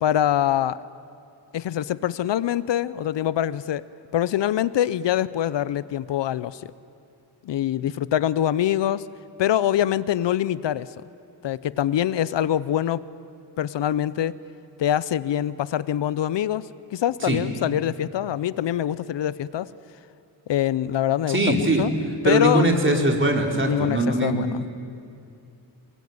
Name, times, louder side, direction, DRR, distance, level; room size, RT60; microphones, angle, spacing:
voice 1, 0.0-0.8 1.5-3.8 4.1-6.7 7.4-9.1 9.4-10.9 11.4-13.0 13.6-14.4 14.8-19.7 20.5-21.9 22.2-22.7 23.6-24.7, left 11 dB, 80° left, 18 dB, 0.8 m, -24 dB
voice 2, 21.3-21.9 22.2-24.7, right 1 dB, 25° right, 2 dB, 4.0 m, -21 dB
28.0 x 22.0 x 9.5 m, 2.6 s
cardioid pair, 95°, 42 cm